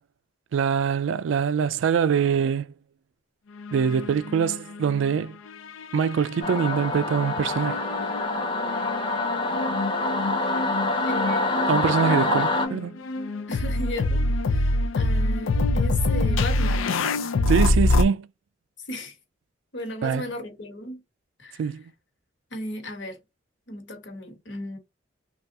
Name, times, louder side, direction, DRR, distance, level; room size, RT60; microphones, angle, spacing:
voice 1, 0.5-2.7 3.7-5.4 5.9-7.8 11.7-13.0 17.5-18.3 20.0-20.2 21.6-21.8, right 7 dB, 75° right, 0.3 m, -24 dB
sound 1, 3.6-5.2 5.5-6.9 7.6-18.0, left 2 dB, 85° left, 0.4 m, -26 dB
Singing / Musical instrument, 6.4-12.7, left 2 dB, 25° left, 0.9 m, -26 dB
voice 2, 11.0-11.7 13.5-17.1 18.9-19.2 19.7-21.0 21.4-21.8 22.5-23.2 23.7-24.8, left 1 dB, 60° left, 1.2 m, -36 dB
3.3 x 2.4 x 2.7 m
head